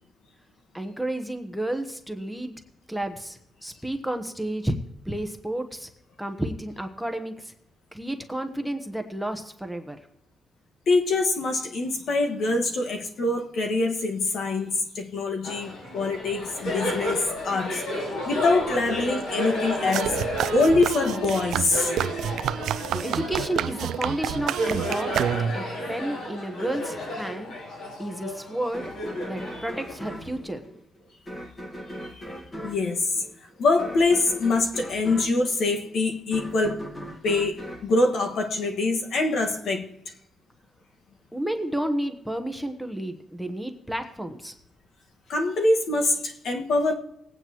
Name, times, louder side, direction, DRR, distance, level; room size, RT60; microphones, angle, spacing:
voice 1, 0.7-2.5 2.9-4.7 5.0-5.9 6.2-7.5 7.9-10.0 23.0-27.5 28.0-28.9 29.3-30.6 41.3-44.5, right 1 dB, ahead, 1.1 m, -31 dB
voice 2, 10.9-17.8 18.2-20.2 20.5-21.9 29.5-29.6 32.1-32.2 32.6-33.1 33.6-36.9 37.2-39.9 45.3-46.9, left 3 dB, 65° left, 1.7 m, -24 dB
Laughter, 15.4-30.4, left 1 dB, 90° left, 5.6 m, -33 dB
sound 1, 19.9-25.7, right 10 dB, 80° right, 0.4 m, -29 dB
sound 2, 28.7-39.0, equal, 25° left, 1.7 m, -39 dB
20.0 x 8.9 x 3.0 m
cardioid pair, 115°, 0 cm